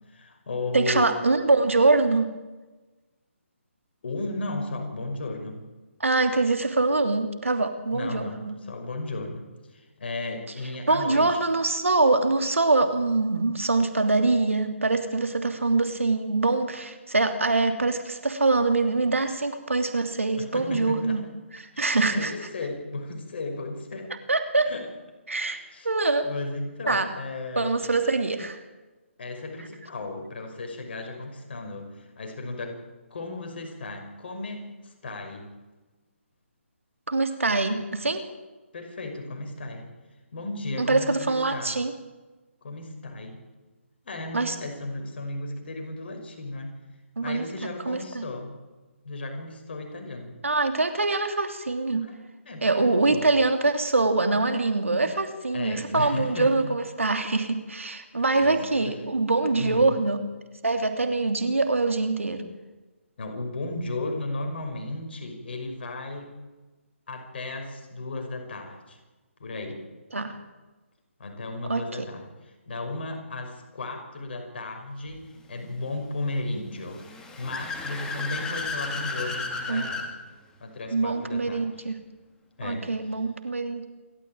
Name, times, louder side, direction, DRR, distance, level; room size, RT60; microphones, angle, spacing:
voice 1, 0.1-1.1 4.0-5.6 7.9-11.5 20.4-21.3 21.7-24.1 24.6-24.9 25.4-25.9 26.2-27.8 29.2-32.8 33.1-35.5 38.7-39.9 40.3-41.7 42.6-43.4 44.0-46.7 47.2-48.5 49.0-50.4 52.0-52.2 52.5-53.3 55.5-56.6 58.2-59.0 59.6-59.9 63.2-66.4 67.1-69.0 69.4-69.8 71.2-80.1 80.6-81.9 82.6-82.9, left 2 dB, 50° left, 4 dB, 5.7 m, -35 dB
voice 2, 0.7-2.3 6.0-8.5 10.9-21.2 21.6-22.5 24.3-24.7 25.3-25.6 25.8-26.3 26.9-27.1 27.6-28.6 37.1-38.2 40.8-41.9 44.3-44.5 47.2-47.4 47.9-48.2 50.4-52.0 52.6-60.2 60.6-62.4 70.1-70.4 71.7-72.1 79.7-79.9 80.9-82.0 82.6-83.9, right 3 dB, 80° right, 7 dB, 2.9 m, -24 dB
Car / Accelerating revving vroom, 76.9-80.1, left 3 dB, 10° left, 2.6 m, -33 dB
27.5 x 14.0 x 8.9 m, 1.2 s
figure-of-eight pair, 145°, 7 cm